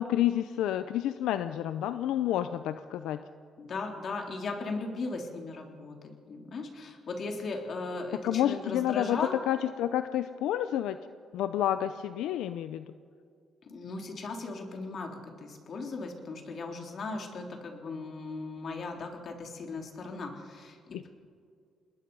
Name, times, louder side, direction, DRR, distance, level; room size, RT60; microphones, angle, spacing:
voice 1, 0.0-3.2 8.2-11.0 11.3-12.9 20.9-21.1, left 11 dB, 90° left, 11 dB, 0.6 m, -29 dB
voice 2, 3.6-9.4 13.6-21.1, left 3 dB, 55° left, 2 dB, 3.4 m, -37 dB
27.5 x 20.5 x 5.5 m, 2.2 s
cardioid pair, 90°, 0 cm